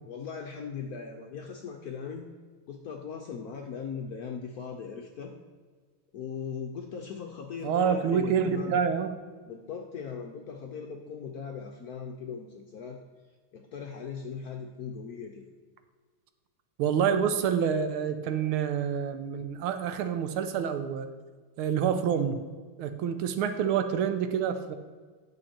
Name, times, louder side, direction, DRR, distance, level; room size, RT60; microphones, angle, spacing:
voice 1, 0.1-2.3 2.7-5.3 6.1-8.8 9.5-13.0 13.5-15.5, left 6 dB, 70° left, 2 dB, 0.9 m, -39 dB
voice 2, 7.6-9.1 16.8-21.1 21.6-22.4 22.8-24.7, right 7 dB, 85° right, 9 dB, 1.6 m, -27 dB
9.8 x 6.3 x 4.4 m, 1.5 s
omnidirectional pair, 2.3 m